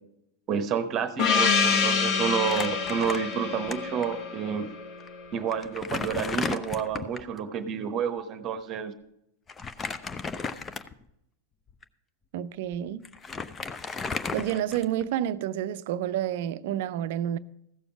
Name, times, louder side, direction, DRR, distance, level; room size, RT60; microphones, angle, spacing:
voice 1, 0.5-4.7 5.3-8.9, right 7 dB, 35° right, 1.0 m, -29 dB
Gong, 1.2-5.5, left 5 dB, 40° left, 1.2 m, -27 dB
Crumpling crinkling, 2.4-3.7 4.0-4.1 5.0-5.1 5.5-7.3 9.5-11.1 11.7-11.8 12.7-12.8 13.0-15.1, left 4 dB, 20° left, 0.6 m, -34 dB
voice 2, 12.3-13.0 14.3-17.4, right 11 dB, 50° right, 0.5 m, -29 dB
15.0 x 7.0 x 4.6 m
figure-of-eight pair, 90°, 0 cm